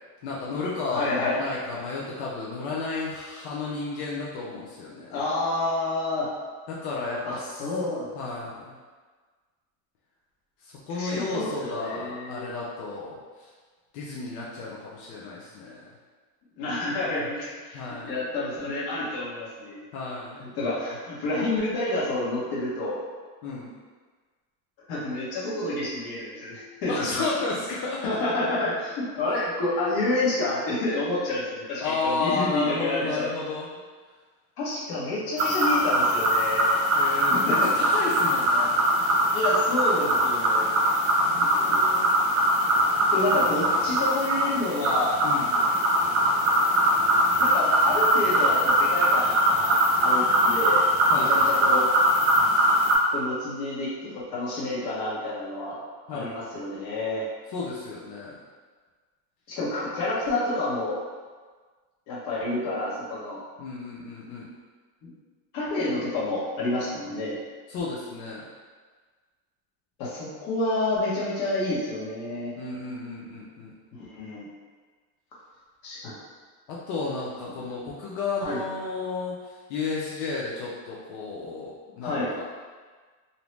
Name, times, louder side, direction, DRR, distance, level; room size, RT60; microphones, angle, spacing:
voice 1, 0.2-5.1 6.7-7.7 8.1-8.8 10.6-13.5 13.9-15.9 17.7-18.1 19.9-20.4 23.4-23.8 26.9-28.2 31.8-33.7 36.9-38.8 41.2-42.0 45.2-45.5 51.1-51.3 56.1-56.4 57.5-58.4 63.6-64.5 67.7-68.4 72.6-73.7 76.7-82.4, left 3 dB, 80° left, -5 dB, 0.7 m, -32 dB
voice 2, 0.9-1.4 5.1-6.3 7.2-8.1 10.9-12.5 16.6-19.8 20.4-23.0 24.9-27.1 28.0-33.3 34.6-36.8 37.3-37.7 39.3-40.7 41.4-41.8 43.1-45.2 47.4-50.9 51.1-51.9 53.1-55.8 56.1-57.3 59.5-61.0 62.1-63.4 65.0-65.1 65.5-67.4 70.0-72.5 74.0-74.5 75.8-76.2 78.4-78.6 82.0-82.3, left 2 dB, 45° left, -7 dB, 1.0 m, -29 dB
sound 1, 35.4-52.9, equal, 35° right, 0.5 m, -22 dB
2.7 x 2.0 x 3.1 m, 1.4 s
supercardioid pair, 145°, 47 cm